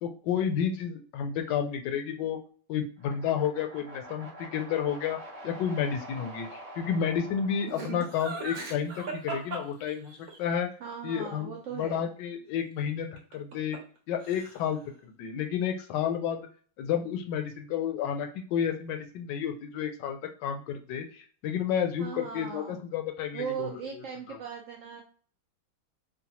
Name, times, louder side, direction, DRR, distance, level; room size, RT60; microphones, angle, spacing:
voice 1, 0.0-2.4 2.7-5.2 5.4-10.7 11.0-13.1 13.3-13.8 14.1-16.5 16.8-24.4, left 8 dB, 80° left, 5 dB, 1.2 m, -31 dB
sound 1, 3.0-9.1, right 1 dB, 35° right, 0.8 m, -46 dB
Laughter, 7.7-10.4 13.2-14.0 14.2-14.8, right 3 dB, 60° right, 1.2 m, -38 dB
voice 2, 10.8-12.1 22.0-22.8 23.3-25.0, right 7 dB, 80° right, 1 dB, 0.7 m, -38 dB
3.9 x 2.0 x 2.8 m, 0.43 s
omnidirectional pair, 1.9 m